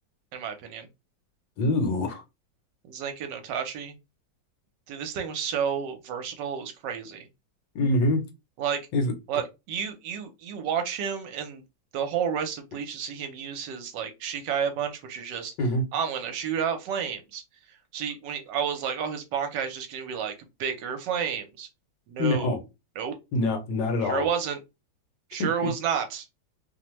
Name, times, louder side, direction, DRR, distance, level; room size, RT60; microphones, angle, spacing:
voice 1, 0.3-0.9 2.9-4.0 4.9-7.2 8.6-8.8 9.3-11.6 11.9-15.5 15.9-17.4 17.9-20.3 20.6-21.7 22.1-22.6 23.0-23.2 24.0-24.6 25.3-26.3, right 7 dB, 75° right, 1.2 m, -31 dB
voice 2, 1.6-2.2 7.7-8.2 8.9-9.1 15.6-15.8 22.2-22.6 23.3-24.3 25.4-25.7, left 2 dB, 75° left, 1.3 m, -25 dB
3.0 x 2.1 x 2.9 m
omnidirectional pair, 2.0 m